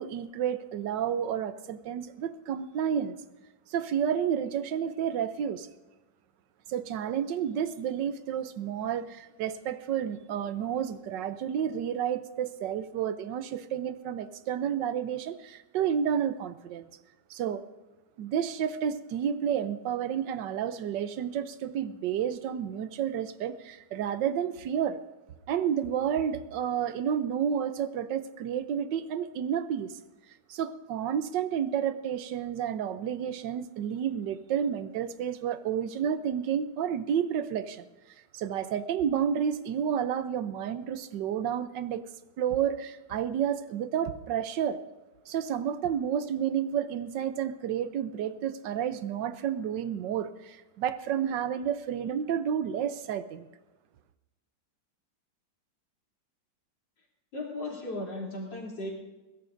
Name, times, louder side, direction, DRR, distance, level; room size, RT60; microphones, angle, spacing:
voice 1, 0.0-3.2 3.7-5.7 6.7-16.9 17.3-17.6 18.2-25.0 25.5-30.0 30.5-37.9 38.3-42.1 42.4-44.8 45.3-53.5, right 8 dB, 75° right, 1.4 m, -30 dB
voice 2, 57.3-58.9, left 2 dB, 75° left, 4.0 m, -36 dB
21.0 x 16.5 x 2.6 m
omnidirectional pair, 2.0 m